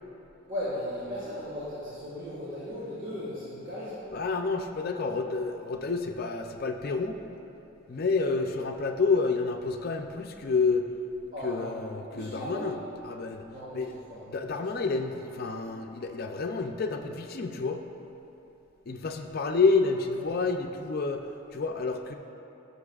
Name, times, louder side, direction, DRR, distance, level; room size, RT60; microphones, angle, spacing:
voice 1, 0.5-4.1 11.3-11.8 12.1-12.8 13.5-13.8 14.1-14.6, left 1 dB, 40° right, -10 dB, 1.8 m, -37 dB
voice 2, 4.1-7.2 7.9-10.8 11.4-12.8 13.0-13.4 13.7-13.9 14.3-17.8 18.9-21.2 21.5-22.1, left 4 dB, 45° left, 4 dB, 0.5 m, -29 dB
15.0 x 6.5 x 2.4 m, 2.9 s
head